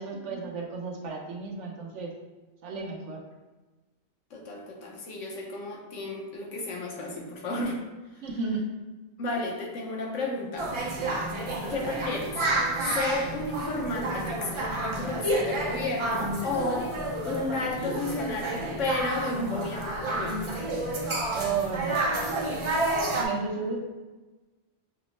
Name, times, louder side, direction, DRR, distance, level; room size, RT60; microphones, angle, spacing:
voice 1, 0.0-2.1 2.6-3.2 8.2-8.7 11.5-11.7 21.3-21.9 23.1-23.8, right 4 dB, 75° right, 1 dB, 1.0 m, -33 dB
voice 2, 4.3-7.8 9.2-10.7 11.7-12.4 12.9-16.9 17.3-20.5, left 2 dB, 85° left, 0 dB, 1.1 m, -32 dB
sound 1, 10.6-23.2, right 2 dB, 40° right, 0.4 m, -30 dB
5.9 x 2.1 x 3.1 m, 1.2 s
omnidirectional pair, 1.2 m